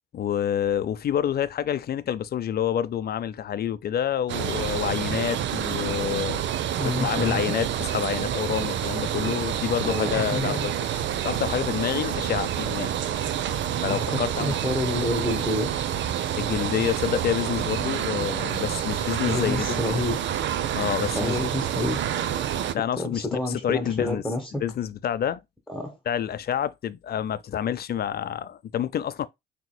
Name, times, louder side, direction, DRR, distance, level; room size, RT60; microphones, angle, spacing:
voice 1, 0.1-6.4 6.8-12.9 13.8-14.5 16.4-20.0 20.7-21.4 22.7-24.2 24.6-25.4 26.1-29.3, left 9 dB, 50° left, 0.6 m, -28 dB
sound 1, 4.3-22.7, right 10 dB, 65° right, 0.6 m, -28 dB
voice 2, 6.7-7.5 9.8-10.7 13.9-15.8 19.3-20.2 21.1-22.0 23.0-24.6 25.7-26.0, left 2 dB, ahead, 1.2 m, -29 dB
6.1 x 3.0 x 2.2 m
cardioid pair, 90°, 20 cm